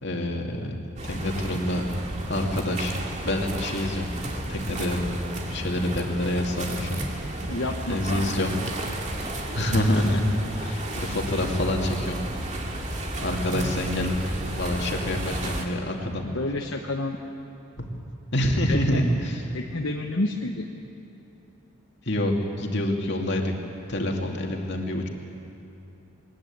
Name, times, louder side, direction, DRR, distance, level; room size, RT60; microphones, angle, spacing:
voice 1, 0.0-0.7 1.1-1.8 2.3-3.0 3.2-4.1 4.5-5.0 5.5-7.0 7.9-8.7 9.5-10.3 10.6-12.2 13.2-14.2 14.6-16.3 17.8-17.9 18.3-19.4 22.0-23.5 23.9-25.1, left 1 dB, 55° left, 1 dB, 2.6 m, -26 dB
sound 1, 1.0-15.6, right 1 dB, 35° right, 2.3 m, -32 dB
voice 2, 7.5-8.4 16.2-17.2 18.7-19.0 19.5-20.7, left 2 dB, 70° left, 2 dB, 1.2 m, -30 dB
22.0 x 20.5 x 8.8 m, 2.9 s
head